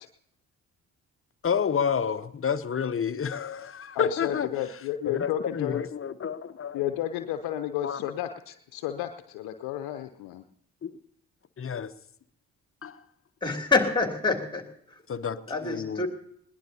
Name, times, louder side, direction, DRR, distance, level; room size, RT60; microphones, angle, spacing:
voice 1, 1.4-4.5 5.0-6.8 7.2-7.3 7.8-8.0 10.8-11.0 11.6-11.9 12.8-13.0 15.1-15.4 15.7-16.0, left 7 dB, 35° left, 0.8 m, -29 dB
voice 2, 3.9-5.8 6.2-6.3 6.7-10.4, left 12 dB, 70° left, 0.7 m, -32 dB
voice 3, 13.4-15.0 15.5-16.1, left 4 dB, 10° left, 2.9 m, -27 dB
20.5 x 19.0 x 2.8 m
hypercardioid pair, 40°, 40 cm